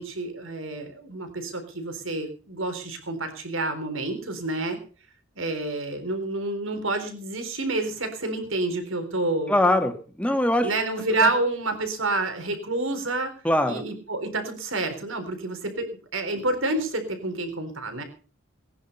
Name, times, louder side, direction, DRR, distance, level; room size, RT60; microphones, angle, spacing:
voice 1, 0.0-4.8 5.4-9.5 10.6-13.3 13.7-18.0, right 2 dB, 75° right, 7 dB, 3.9 m, -28 dB
voice 2, 9.5-10.7 11.2-11.3 13.4-13.8, left 1 dB, 5° left, 6 dB, 1.8 m, -22 dB
19.5 x 10.5 x 5.5 m, 0.40 s
head